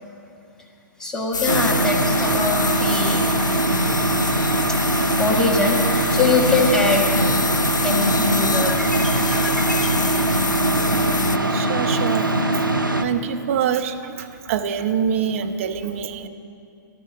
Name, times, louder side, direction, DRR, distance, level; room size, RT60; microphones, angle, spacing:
voice 1, 1.0-3.3 4.7-7.2 7.8-9.9, left 3 dB, 5° left, -2 dB, 1.3 m, -23 dB
sound 1, 1.3-11.4, left 4 dB, 65° left, 0.5 m, -27 dB
sound 2, 1.5-13.0, right 1 dB, 90° right, 0.8 m, -21 dB
voice 2, 11.5-12.3 13.0-13.9 14.5-16.3, right 8 dB, 40° right, 7 dB, 0.7 m, -24 dB
13.0 x 12.0 x 6.6 m, 2.5 s
figure-of-eight pair, 115°, 11 cm